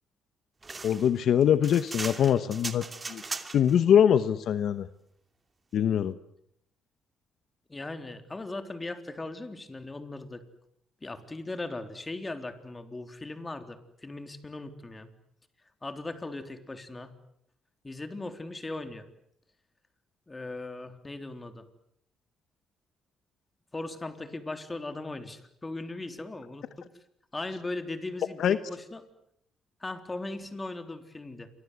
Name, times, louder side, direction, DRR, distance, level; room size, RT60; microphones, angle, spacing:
sound 1, 0.6-3.8, right 3 dB, 30° right, 2.7 m, -38 dB
voice 1, 0.8-3.2 3.5-4.9 5.7-6.1 28.4-28.6, left 9 dB, 70° left, 13 dB, 1.1 m, -23 dB
voice 2, 7.7-10.4 11.0-15.1 15.8-17.1 17.8-19.1 20.3-21.6 23.7-26.9 27.3-29.0 29.8-31.5, left 2 dB, 20° left, 8 dB, 3.6 m, -38 dB
28.5 x 25.0 x 8.2 m, 0.74 s
cardioid pair, 90°, 0 cm